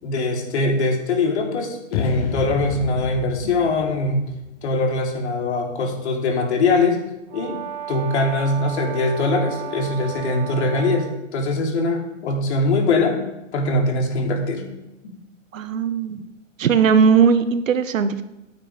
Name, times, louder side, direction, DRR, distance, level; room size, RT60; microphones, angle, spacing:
voice 1, 0.0-4.2 4.6-7.0 7.3-7.6 7.9-13.2 13.5-14.7, left 2 dB, 60° left, 2 dB, 3.7 m, -22 dB
sound 1, 1.9-5.1, left 9 dB, 30° left, 0.8 m, -30 dB
Brass instrument, 7.3-11.2, right 9 dB, 40° right, 2.6 m, -34 dB
voice 2, 15.5-16.3 16.6-18.2, right 6 dB, 80° right, 11 dB, 1.5 m, -18 dB
18.0 x 9.1 x 5.3 m, 0.93 s
hypercardioid pair, 160°, 39 cm